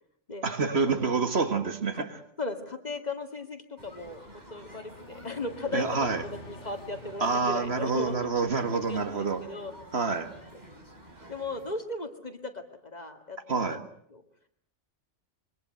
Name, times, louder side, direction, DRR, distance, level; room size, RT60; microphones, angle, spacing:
voice 1, 0.4-2.1 5.7-6.2 7.2-9.4 9.9-10.3 13.5-13.8, right 4 dB, 60° right, 2.0 m, -27 dB
voice 2, 2.4-8.2 8.5-9.7 11.3-13.8 14.1-14.2, left 3 dB, 35° left, 2.2 m, -37 dB
sound 1, 3.8-11.7, right 1 dB, 35° right, 3.9 m, -50 dB
sound 2, 4.7-8.6, left 2 dB, 70° left, 1.9 m, -48 dB
25.5 x 23.5 x 7.8 m
omnidirectional pair, 1.2 m